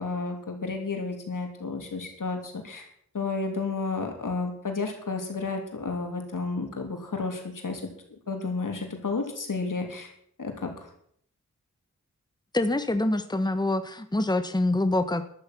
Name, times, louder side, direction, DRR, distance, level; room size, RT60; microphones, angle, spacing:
voice 1, 0.0-2.9 3.1-7.8 8.3-10.1 10.4-10.9, left 4 dB, 75° left, 3 dB, 3.3 m, -32 dB
voice 2, 12.5-15.2, left 2 dB, 15° left, 9 dB, 1.2 m, -25 dB
12.5 x 12.0 x 6.2 m, 0.66 s
cardioid pair, 50°, 32 cm